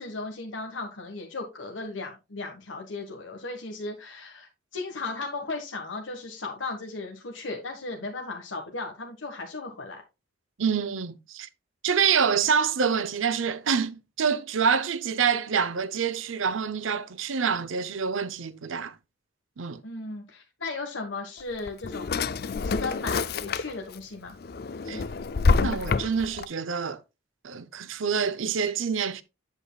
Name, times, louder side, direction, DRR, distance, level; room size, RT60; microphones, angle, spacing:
voice 1, 0.0-10.0 19.8-24.4, left 3 dB, 80° left, 1.4 m, -36 dB
voice 2, 10.6-11.5 11.8-19.0 19.6-19.8 24.9-25.0 25.6-27.0 27.4-29.2, right 6 dB, 90° right, 0.7 m, -26 dB
Drawer open or close, 21.4-24.0 24.4-26.4, left 4 dB, 50° left, 0.4 m, -27 dB
8.2 x 8.0 x 2.3 m
head